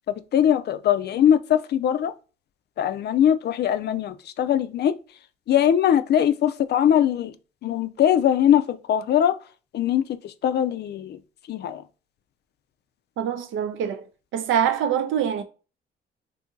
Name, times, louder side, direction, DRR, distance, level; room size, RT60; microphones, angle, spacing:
voice 1, 0.3-2.1 2.8-4.9 5.5-7.3 7.6-9.4 9.7-11.2 11.5-11.8, left 10 dB, 55° left, 0.4 m, -21 dB
voice 2, 13.2-14.1 14.3-15.4, right 9 dB, 80° right, 0.6 m, -24 dB
2.7 x 2.6 x 3.6 m
cardioid pair, 90°, 20 cm